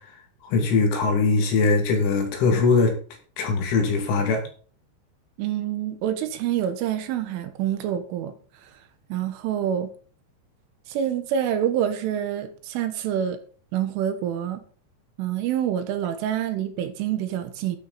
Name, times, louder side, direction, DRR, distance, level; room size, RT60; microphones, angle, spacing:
voice 1, 0.5-2.9 3.4-4.4, left 4 dB, 70° left, 5.0 m, -21 dB
voice 2, 5.4-8.3 8.6-8.7 9.1-9.9 10.9-13.4 13.7-14.6 15.2-17.8, right 10 dB, 75° right, 3.7 m, -27 dB
12.5 x 8.5 x 4.2 m
omnidirectional pair, 5.9 m